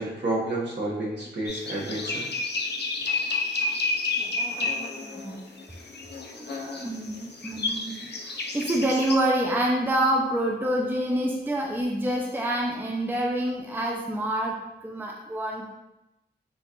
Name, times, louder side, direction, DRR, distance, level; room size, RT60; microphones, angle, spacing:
voice 1, 0.0-2.2, right 2 dB, 65° right, -5 dB, 1.3 m, -30 dB
sound 1, 1.5-9.2, left 3 dB, 60° left, 0.6 m, -30 dB
voice 2, 4.2-5.4 6.3-7.9 8.5-14.6 14.8-15.7, right 1 dB, 10° right, 0 dB, 0.5 m, -27 dB
6.0 x 2.5 x 3.0 m, 0.93 s
wide cardioid pair, 95°, 19 cm